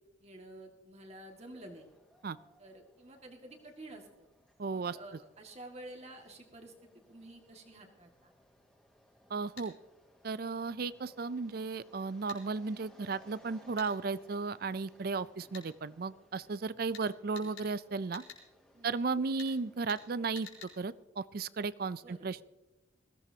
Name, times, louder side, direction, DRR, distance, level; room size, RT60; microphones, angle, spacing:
voice 1, 0.2-1.9 2.6-4.3 4.7-8.3 15.3-15.5 17.3-17.5 18.7-19.2 22.0-22.3, right 1 dB, 35° right, 2 dB, 2.0 m, -51 dB
sound 1, 1.3-21.0, equal, 5° left, 2.1 m, -64 dB
voice 2, 4.6-5.0 9.3-9.7 10.2-18.2 18.8-22.4, right 4 dB, 50° right, 17 dB, 0.4 m, -35 dB
sound 2, 9.6-9.7 12.3-12.4 13.8-13.9 15.5-15.7 16.9-17.1 17.4-17.7 18.1-18.4 19.4-19.5 19.9-20.0 20.4-20.7, left 6 dB, 90° left, 4.2 m, -49 dB
20.5 x 16.0 x 2.9 m, 1.0 s
head